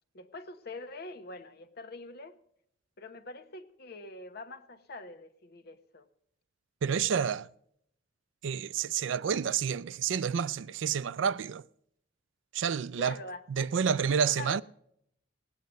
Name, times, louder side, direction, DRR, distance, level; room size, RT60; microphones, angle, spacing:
voice 1, 0.1-2.4 3.0-6.1 13.0-14.0 14.3-14.6, left 2 dB, 60° left, 1.1 m, -44 dB
voice 2, 6.8-7.5 8.4-11.6 12.5-13.2 13.5-14.6, right 7 dB, 75° right, 0.4 m, -29 dB
18.5 x 9.4 x 5.2 m
head